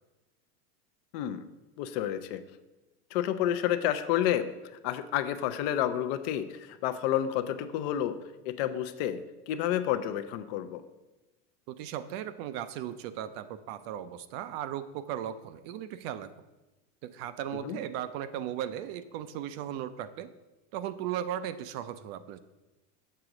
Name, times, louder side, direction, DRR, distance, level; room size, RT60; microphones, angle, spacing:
voice 1, 1.1-1.4 1.8-2.4 3.1-4.5 4.8-8.2 8.4-9.2 9.5-10.8 17.6-17.8, left 11 dB, 55° left, 11 dB, 0.5 m, -30 dB
voice 2, 11.7-16.3 17.0-20.3 20.7-22.4, right 10 dB, 55° right, 12 dB, 0.5 m, -37 dB
6.7 x 3.9 x 5.9 m, 1.1 s
supercardioid pair, 145°, 36 cm